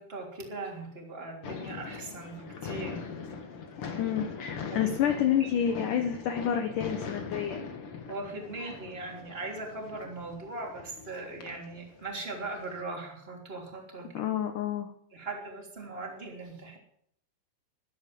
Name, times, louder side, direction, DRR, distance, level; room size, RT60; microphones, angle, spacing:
voice 1, 0.0-3.1 4.7-4.9 5.4-5.5 8.1-14.2 15.1-16.8, right 3 dB, 15° right, 1 dB, 3.0 m, -39 dB
sound 1, 1.4-12.8, left 5 dB, 45° left, 2.0 m, -41 dB
voice 2, 4.0-7.6 14.1-14.9, left 9 dB, 65° left, 6 dB, 2.3 m, -29 dB
12.5 x 12.0 x 7.6 m, 0.69 s
omnidirectional pair, 4.6 m